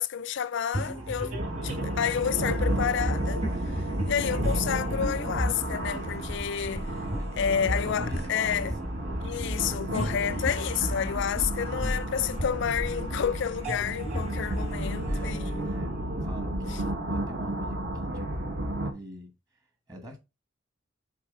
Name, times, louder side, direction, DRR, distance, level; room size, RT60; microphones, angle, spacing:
voice 1, 0.0-1.3 1.6-3.4 3.7-6.9 7.4-8.7 9.2-15.7 16.6-16.8, left 8 dB, 65° left, 0.4 m, -30 dB
sound 1, 0.7-16.4, equal, 35° right, 3.4 m, -34 dB
sound 2, 1.4-18.9, right 1 dB, 60° right, 1.5 m, -33 dB
voice 2, 7.1-9.0 15.1-19.3 19.9-20.2, equal, 20° right, 1.3 m, -44 dB
7.2 x 3.8 x 3.7 m
head